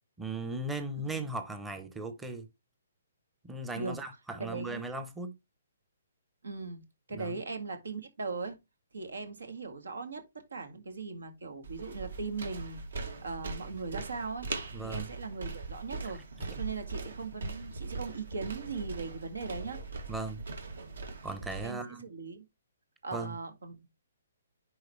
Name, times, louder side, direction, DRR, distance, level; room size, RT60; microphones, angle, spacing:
voice 1, 0.2-2.5 3.4-5.4 7.1-7.4 14.7-15.1 16.4-16.5 20.1-20.4 21.2-22.0 23.1-23.3, right 2 dB, 5° right, 0.7 m, -37 dB
voice 2, 1.0-1.3 3.8-4.0 4.4-4.8 6.4-8.6 8.9-14.5 14.8-16.2 16.5-19.8 21.6-22.4 23.0-23.9, right 4 dB, 90° right, 1.9 m, -39 dB
sound 1, 11.6-21.6, right 3 dB, 75° right, 2.2 m, -40 dB
10.5 x 3.9 x 3.1 m
hypercardioid pair, 160°, 0 cm